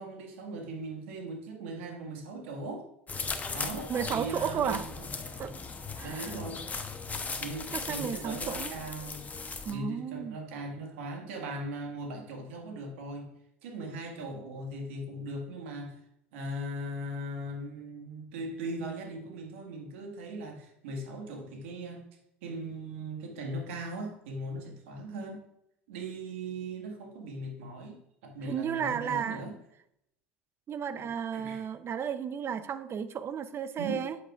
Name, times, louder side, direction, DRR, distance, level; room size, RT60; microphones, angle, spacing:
voice 1, 0.0-2.9 3.5-5.1 6.0-6.7 7.4-9.3 9.7-13.3 13.6-16.0 16.3-22.0 22.4-25.4 25.9-29.6 31.0-31.6 33.8-34.1, right 1 dB, 80° right, 2 dB, 1.8 m, -39 dB
sound 1, 3.1-9.7, left 4 dB, 25° left, 0.9 m, -38 dB
voice 2, 3.9-4.9 5.4-5.5 6.0-6.3 7.7-8.7 9.6-10.4 28.5-29.4 30.7-34.2, right 8 dB, 40° right, 12 dB, 0.7 m, -33 dB
8.1 x 8.0 x 2.5 m, 0.76 s
hypercardioid pair, 80°, 7 cm